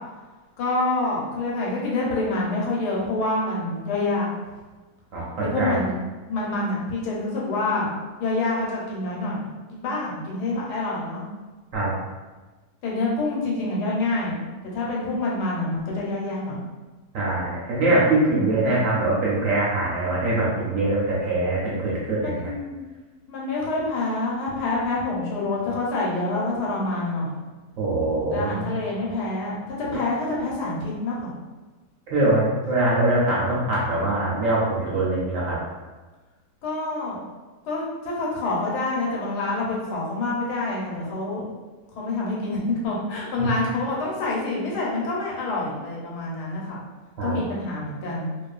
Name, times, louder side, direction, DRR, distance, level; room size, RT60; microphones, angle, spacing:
voice 1, 0.6-4.3 5.4-5.9 6.3-7.9 8.2-11.2 12.8-14.4 14.7-16.6 18.3-18.8 22.2-22.8 23.3-27.3 28.3-31.3 36.6-37.2 37.6-41.5 42.0-46.8 47.2-48.3, left 2 dB, 80° left, -4 dB, 1.2 m, -27 dB
voice 2, 5.1-5.8 11.7-11.9 17.1-22.5 27.8-28.7 32.1-35.6 43.4-43.5 47.2-47.4, right 2 dB, 65° right, -6 dB, 0.8 m, -23 dB
2.6 x 2.4 x 2.3 m, 1.3 s
omnidirectional pair, 1.7 m